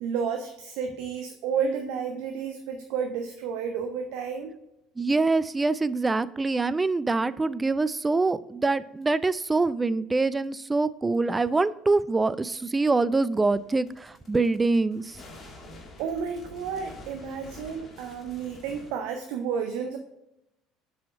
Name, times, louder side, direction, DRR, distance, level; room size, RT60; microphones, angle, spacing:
voice 1, 0.0-4.5 16.0-20.0, right 6 dB, 60° right, 5 dB, 0.6 m, -31 dB
voice 2, 5.0-15.2, right 3 dB, 15° right, 17 dB, 0.3 m, -25 dB
sound 1, 9.0-9.1 10.4-10.5 12.6-12.7 13.3-18.9, left 1 dB, 30° left, 1.7 m, -48 dB
7.3 x 4.3 x 4.6 m, 0.86 s
figure-of-eight pair, 60°, 0 cm